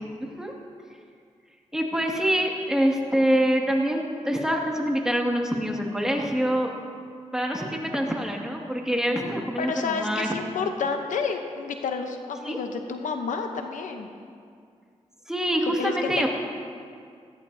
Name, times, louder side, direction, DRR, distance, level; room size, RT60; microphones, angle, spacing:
voice 1, 0.2-0.5 1.7-6.7 7.3-10.6 12.5-12.6 15.3-16.3, equal, 5° right, 0 dB, 2.1 m, -25 dB
voice 2, 9.6-14.1 15.8-16.3, left 5 dB, 85° left, 5 dB, 0.9 m, -30 dB
17.0 x 13.5 x 2.8 m, 2.2 s
cardioid pair, 55°, 13 cm